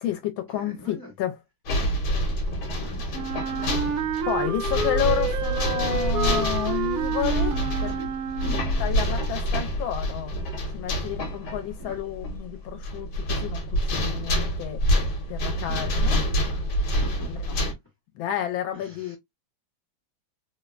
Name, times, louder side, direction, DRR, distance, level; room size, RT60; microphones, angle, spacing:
voice 1, 0.0-1.4 4.2-8.0 8.8-10.3 10.7-14.8 15.3-16.2 17.3-17.6 18.1-19.2, left 10 dB, 85° left, 1.4 m, -31 dB
voice 2, 0.5-1.1 2.6-4.0 7.3-8.1 8.4-8.6 11.8-12.0 15.7-17.3 18.7-19.2, left 2 dB, 20° left, 0.5 m, -44 dB
sound 1, 1.7-17.7, equal, 65° left, 1.4 m, -27 dB
Wind instrument woodwind instrument, 3.1-8.9, right 6 dB, 75° right, 0.8 m, -29 dB
3.5 x 2.1 x 2.3 m
omnidirectional pair, 2.1 m